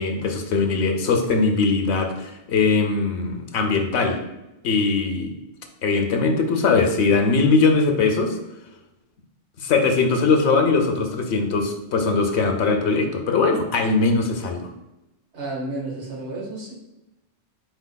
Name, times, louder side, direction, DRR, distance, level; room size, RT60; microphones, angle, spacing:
voice 1, 0.0-4.2 4.6-5.3 5.8-8.4 9.6-14.7, left 4 dB, 75° left, 4 dB, 0.9 m, -21 dB
voice 2, 15.3-16.7, right 2 dB, 80° right, -3 dB, 1.5 m, -31 dB
4.7 x 4.6 x 2.2 m, 0.93 s
omnidirectional pair, 1.2 m